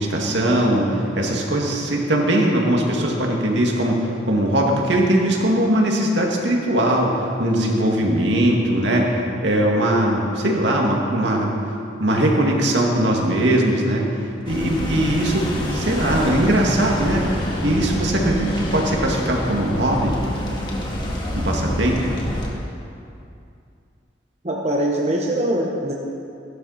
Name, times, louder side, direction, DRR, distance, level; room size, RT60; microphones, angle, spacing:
voice 1, 0.0-9.1 9.4-11.5 12.0-17.3 17.6-20.1 21.4-22.0, right 1 dB, 70° right, 0 dB, 2.3 m, -20 dB
sound 1, 14.4-22.5, equal, 25° left, 2.1 m, -27 dB
voice 2, 24.4-25.9, right 1 dB, 35° right, -1 dB, 1.2 m, -23 dB
15.0 x 12.5 x 5.8 m, 2.5 s
head